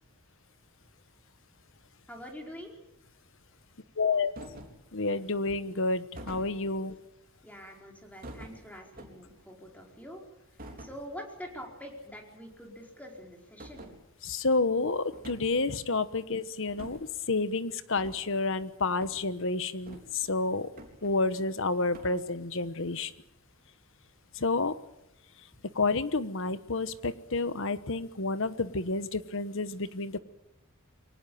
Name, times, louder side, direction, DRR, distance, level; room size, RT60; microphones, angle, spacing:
voice 1, 2.1-2.7 6.6-6.8 7.4-10.2 10.5-13.9 25.5-25.7, equal, 5° left, 1 dB, 4.7 m, -45 dB
voice 2, 4.0-4.3 4.9-7.0 14.2-20.7 21.0-23.1 24.3-24.7 25.7-30.2, left 3 dB, 60° left, 14 dB, 1.2 m, -30 dB
sound 1, 4.4-4.9 6.2-6.9 8.2-9.4 10.6-11.0 11.4-11.7 11.9-12.0 12.5-12.6 13.6-14.0 15.1-15.7 16.7-17.1 17.9-18.2 19.0-19.2 19.9-20.3 20.8-21.5 21.9-22.2, right 1 dB, 40° right, 3.9 m, -47 dB
23.5 x 18.5 x 8.7 m, 0.85 s
head